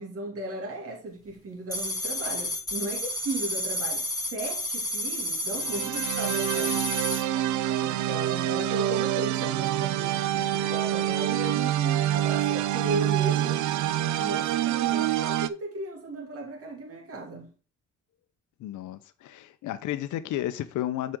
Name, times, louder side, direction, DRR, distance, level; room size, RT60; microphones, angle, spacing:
voice 1, 0.0-4.0 4.3-7.1 7.8-13.6 14.2-17.5, right 2 dB, 50° right, 2.4 m, -36 dB
sound 1, 1.7-7.2, left 1 dB, 10° left, 2.2 m, -31 dB
sound 2, 5.6-15.5, right 12 dB, 75° right, 0.5 m, -26 dB
voice 2, 18.6-21.2, left 13 dB, 80° left, 0.7 m, -32 dB
7.6 x 5.1 x 3.7 m
cardioid pair, 90°, 30 cm